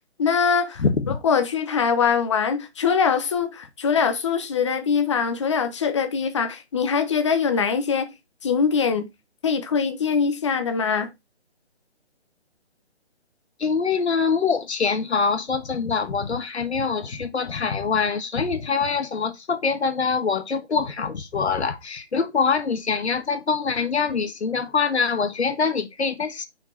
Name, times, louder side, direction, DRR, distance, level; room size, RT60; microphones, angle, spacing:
voice 1, 0.2-0.8 1.2-8.1 8.4-9.1 9.4-11.1, left 6 dB, 25° left, 0.8 m, -22 dB
voice 2, 0.8-1.2 13.6-26.5, left 5 dB, 80° left, 1.3 m, -24 dB
5.8 x 4.2 x 4.4 m
hypercardioid pair, 160°, 33 cm